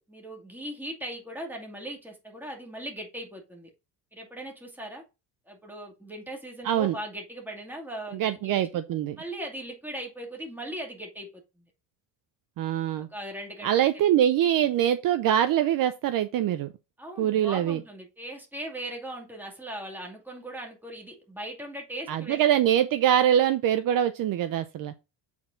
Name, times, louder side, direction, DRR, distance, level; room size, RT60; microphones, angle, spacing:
voice 1, 0.0-3.7 4.1-5.0 5.5-8.6 9.2-11.6 13.1-13.7 17.0-22.4, right 1 dB, 5° right, 2.4 m, -39 dB
voice 2, 6.6-7.0 8.1-9.2 12.6-13.1 13.6-16.7 17.2-17.8 22.1-24.9, right 10 dB, 50° right, 0.6 m, -24 dB
8.3 x 4.4 x 3.9 m
cardioid pair, 125°, 42 cm